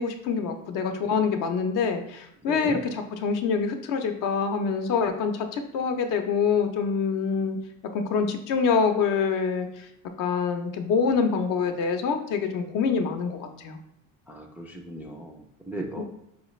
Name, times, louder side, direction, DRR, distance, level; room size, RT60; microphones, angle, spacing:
voice 1, 0.0-7.6 7.9-9.9 10.2-13.8 16.0-16.1, left 5 dB, 60° left, 6 dB, 0.6 m, -26 dB
voice 2, 2.5-2.8 14.3-16.0, right 1 dB, 5° right, 0 dB, 0.3 m, -37 dB
4.9 x 2.4 x 3.1 m, 0.80 s
cardioid pair, 120°, 37 cm